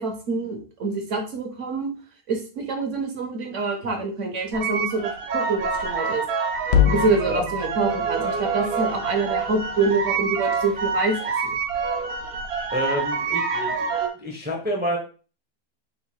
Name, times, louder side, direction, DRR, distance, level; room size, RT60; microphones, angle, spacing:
voice 1, 0.0-1.9 2.3-6.2 6.8-11.6, right 3 dB, 55° right, 3 dB, 1.0 m, -26 dB
sound 1, 4.5-14.1, right 5 dB, 75° right, 1.3 m, -27 dB
sound 2, 6.7-11.0, left 9 dB, 65° left, 0.9 m, -28 dB
voice 2, 12.7-13.9 14.2-15.0, equal, 10° right, 0 dB, 0.5 m, -28 dB
3.8 x 2.5 x 4.4 m, 0.37 s
omnidirectional pair, 1.7 m